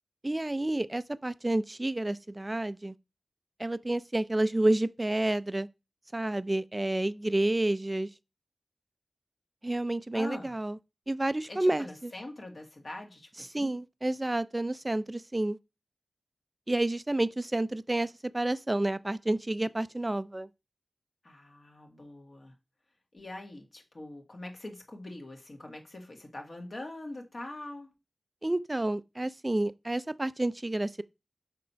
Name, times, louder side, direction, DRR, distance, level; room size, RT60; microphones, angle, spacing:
voice 1, 0.2-2.9 3.6-5.7 6.1-8.1 9.6-10.8 11.1-12.1 13.5-15.6 16.7-20.5 28.4-31.0, right 1 dB, 20° right, 0.5 m, -29 dB
voice 2, 10.1-10.6 11.4-13.7 21.2-22.5 23.1-27.9, left 2 dB, 50° left, 1.8 m, -43 dB
6.5 x 4.3 x 5.6 m
wide cardioid pair, 85°, 0 cm